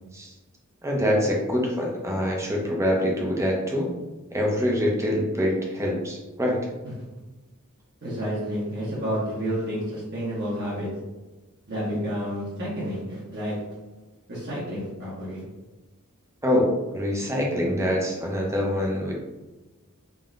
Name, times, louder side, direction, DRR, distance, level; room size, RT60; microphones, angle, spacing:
voice 1, 0.8-3.9 4.3-6.6 16.4-19.1, equal, 15° right, -1 dB, 0.8 m, -25 dB
voice 2, 8.0-10.9 11.7-13.6 14.3-15.4, equal, 50° right, -9 dB, 1.3 m, -30 dB
3.8 x 2.9 x 3.7 m, 1.1 s
head